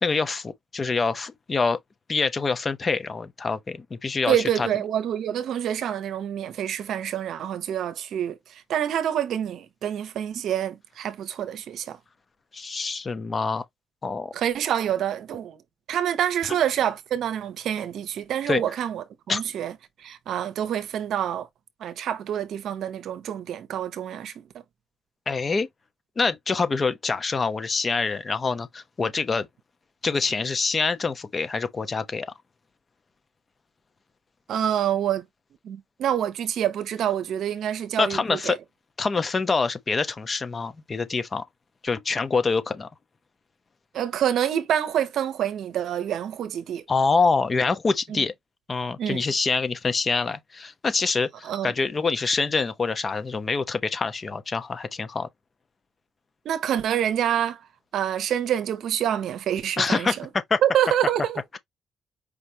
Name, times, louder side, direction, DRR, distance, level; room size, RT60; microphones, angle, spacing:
voice 1, 0.0-1.8 2.1-4.7 12.5-13.6 14.0-14.3 18.5-18.6 19.3-19.4 25.3-25.7 26.2-29.5 30.0-32.3 38.0-38.6 39.0-41.4 41.8-42.9 46.9-48.3 48.7-55.3 59.8-60.6, left 4 dB, 35° left, 0.8 m, -25 dB
voice 2, 4.3-12.0 14.3-15.6 15.9-19.7 20.0-21.5 21.8-24.4 34.5-35.2 35.6-38.6 43.9-46.8 48.1-48.2 49.0-49.2 51.4-51.7 56.4-57.6 57.9-60.3 60.6-61.4, right 10 dB, 75° right, 0.7 m, -27 dB
5.0 x 3.2 x 2.8 m
cardioid pair, 90°, 0 cm